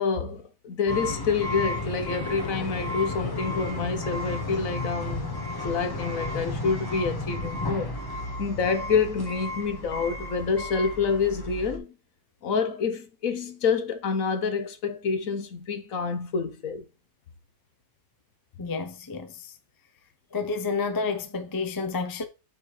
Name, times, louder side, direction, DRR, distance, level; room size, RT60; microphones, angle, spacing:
voice 1, 0.0-5.4 5.6-7.9 8.4-11.9 12.4-16.8, left 5 dB, 55° left, 1.3 m, -27 dB
sound 1, 0.9-11.8, left 2 dB, 15° left, 1.2 m, -33 dB
voice 2, 18.6-19.5 20.3-22.2, left 4 dB, 35° left, 0.3 m, -30 dB
7.7 x 5.5 x 3.3 m
omnidirectional pair, 1.8 m